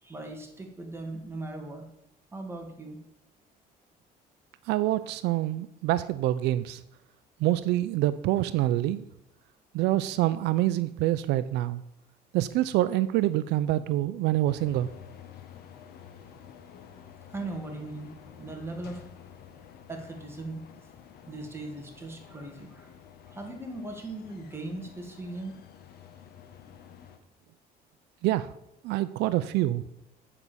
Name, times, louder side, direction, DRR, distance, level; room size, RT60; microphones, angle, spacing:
voice 1, 0.0-1.9 2.3-3.0 17.3-19.1 19.9-20.6 21.3-22.9 23.3-25.5, right 2 dB, 15° right, 2 dB, 2.1 m, -39 dB
voice 2, 4.7-6.8 7.4-9.0 9.7-11.8 12.3-14.9 28.2-28.5 28.8-29.8, right 15 dB, 85° right, 14 dB, 0.4 m, -26 dB
sound 1, 14.5-27.2, left 8 dB, 70° left, 1.2 m, -50 dB
8.4 x 5.4 x 6.9 m, 0.85 s
cardioid pair, 110°, 17 cm